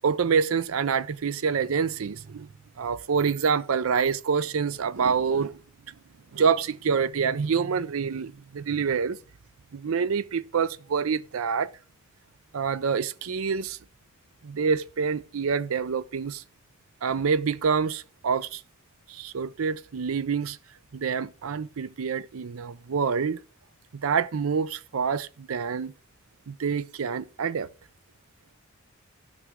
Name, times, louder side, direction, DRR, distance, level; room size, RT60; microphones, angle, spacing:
voice 1, 0.0-2.5 2.8-5.6 6.3-9.2 9.7-11.7 12.5-13.8 14.4-16.4 17.0-18.6 19.1-20.6 20.9-23.4 23.9-25.9 26.5-27.7, right 6 dB, 80° right, 0.5 m, -26 dB
17.5 x 6.1 x 3.6 m
head